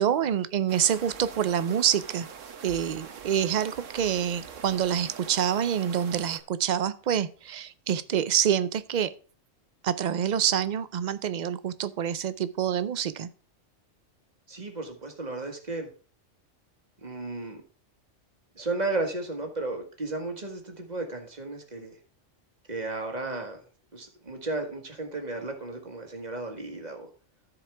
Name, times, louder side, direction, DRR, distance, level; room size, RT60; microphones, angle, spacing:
voice 1, 0.0-2.3 2.6-9.1 9.8-13.3, right 9 dB, 55° right, 15 dB, 0.5 m, -27 dB
sound 1, 0.7-6.4, right 6 dB, 90° right, 1.3 m, -44 dB
voice 2, 14.5-15.9 17.0-17.6 18.6-21.9 22.7-23.6 23.9-27.1, right 2 dB, 35° right, 4 dB, 1.7 m, -34 dB
14.0 x 4.9 x 3.4 m, 0.38 s
omnidirectional pair, 1.3 m